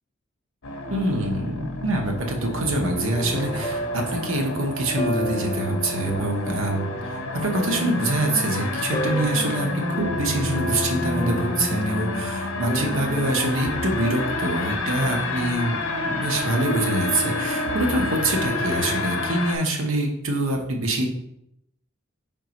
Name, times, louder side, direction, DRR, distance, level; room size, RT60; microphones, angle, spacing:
sound 1, 0.6-19.6, left 2 dB, 65° left, 0.6 m, -30 dB
voice 1, 0.9-21.1, right 2 dB, 70° right, 2 dB, 0.8 m, -25 dB
sound 2, 2.4-18.9, left 1 dB, 30° left, 0.4 m, -33 dB
4.9 x 3.7 x 2.9 m, 0.79 s
head